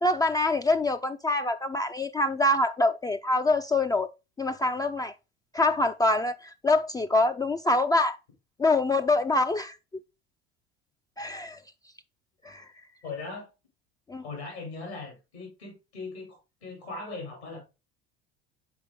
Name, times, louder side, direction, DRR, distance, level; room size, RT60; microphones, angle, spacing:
voice 1, 0.0-4.1 4.4-5.1 5.5-8.2 8.6-9.8 11.2-11.6 12.4-12.7 14.1-14.2, left 2 dB, 10° left, 0.3 m, -25 dB
voice 2, 13.0-13.5 14.2-17.6, left 3 dB, 80° left, 3.1 m, -39 dB
5.9 x 4.9 x 3.6 m
figure-of-eight pair, 70°, 32 cm